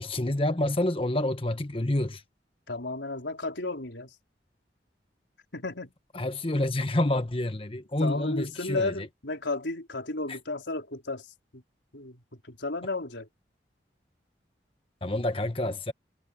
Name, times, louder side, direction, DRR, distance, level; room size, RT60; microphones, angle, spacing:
voice 1, 0.0-2.2 6.1-8.9 10.3-10.4 15.0-15.9, left 1 dB, 30° left, 1.3 m, -28 dB
voice 2, 2.7-4.1 5.5-5.9 8.0-11.6 11.9-13.3, left 2 dB, 85° left, 4.1 m, -33 dB
head